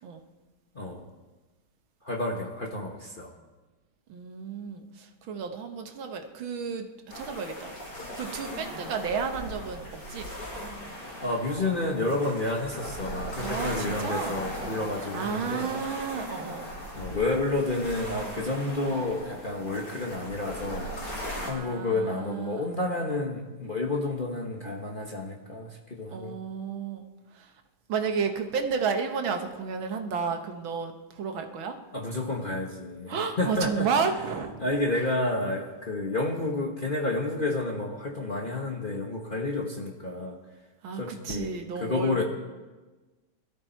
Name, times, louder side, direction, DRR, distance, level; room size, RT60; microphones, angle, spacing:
voice 1, 0.7-1.1 2.0-3.3 11.2-15.7 16.9-21.2 21.5-26.4 31.9-34.1 34.6-40.4 40.9-42.2, left 2 dB, 30° left, 0 dB, 1.1 m, -30 dB
voice 2, 4.1-6.9 7.1-7.7 8.1-10.3 13.4-14.4 15.1-16.7 21.4-22.7 26.1-27.0 27.9-31.8 33.1-34.6 40.8-42.2, right 6 dB, 70° right, 5 dB, 1.9 m, -32 dB
sound 1, 7.1-21.5, equal, 50° left, 4.3 m, -38 dB
21.5 x 13.5 x 4.5 m, 1.2 s
omnidirectional pair, 2.3 m